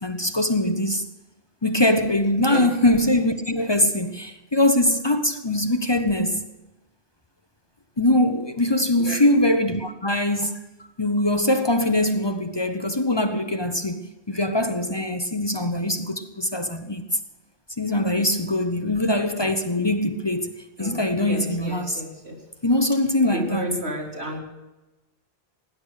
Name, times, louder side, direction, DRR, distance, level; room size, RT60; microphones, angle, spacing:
voice 1, 0.0-1.0 1.6-6.4 8.0-10.5 11.0-17.0 17.8-20.5 20.8-22.0 22.6-23.7, left 1 dB, 25° left, 1.0 m, -22 dB
voice 2, 20.8-22.4 23.3-24.4, right 1 dB, 90° right, 3.6 m, -32 dB
17.5 x 10.5 x 6.5 m
omnidirectional pair, 1.1 m